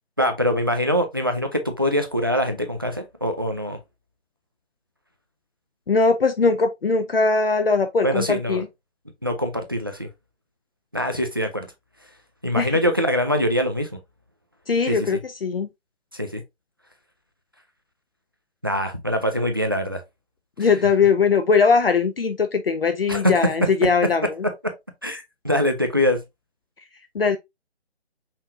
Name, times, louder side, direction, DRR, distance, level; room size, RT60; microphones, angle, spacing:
voice 1, 0.2-3.8 8.0-8.6 9.2-10.1 10.9-11.7 12.4-13.9 14.9-15.0 16.1-16.4 18.6-20.0 23.1-23.3 24.0-24.1 24.6-24.7 25.0-26.2, equal, 20° right, 0.4 m, -23 dB
voice 2, 5.9-8.7 12.6-12.7 14.7-15.7 20.6-24.4 27.1-27.4, left 4 dB, 60° left, 0.6 m, -20 dB
5.6 x 3.2 x 2.5 m
figure-of-eight pair, 145°, 33 cm